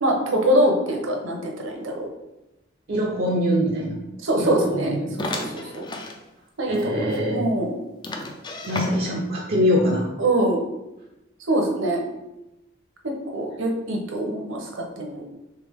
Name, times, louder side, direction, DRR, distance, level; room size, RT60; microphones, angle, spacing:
voice 1, 0.0-2.1 4.2-5.0 5.3-5.8 6.6-7.8 10.2-10.6 11.5-12.0 13.0-15.2, right 1 dB, 70° right, 1 dB, 0.8 m, -24 dB
voice 2, 2.9-4.0 4.4-5.2 6.7-7.5 8.6-10.1, equal, 45° right, -2 dB, 0.5 m, -23 dB
sound 1, 5.2-6.2 6.7-6.8 7.1-7.2 8.0-9.3, left 2 dB, 20° left, 0.3 m, -32 dB
3.4 x 3.4 x 3.6 m, 0.96 s
head